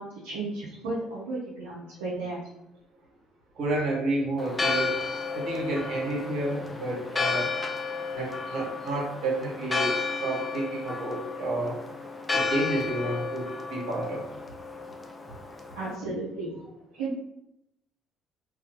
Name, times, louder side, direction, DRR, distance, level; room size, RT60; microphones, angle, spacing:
voice 1, 0.0-2.4 15.7-16.6 17.0-17.1, right 2 dB, 80° right, -6 dB, 0.5 m, -34 dB
voice 2, 3.5-7.5 8.1-11.8 12.3-14.2, right 2 dB, 60° right, -4 dB, 1.1 m, -30 dB
Church bell, 4.4-15.9, left 4 dB, 25° left, 0.4 m, -32 dB
2.2 x 2.2 x 2.8 m, 0.80 s
hypercardioid pair, 55°, 0 cm